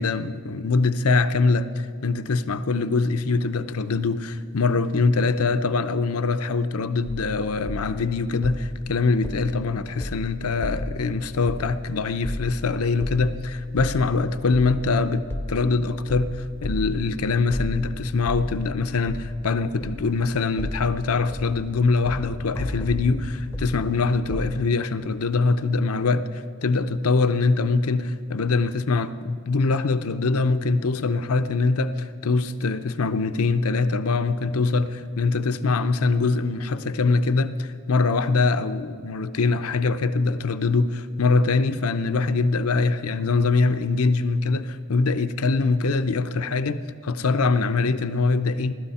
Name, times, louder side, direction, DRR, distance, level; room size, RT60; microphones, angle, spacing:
voice 1, 0.0-48.7, left 3 dB, 80° left, 0.7 m, -23 dB
sound 1, 7.1-24.6, left 1 dB, 10° left, 0.7 m, -35 dB
24.5 x 12.5 x 4.3 m
head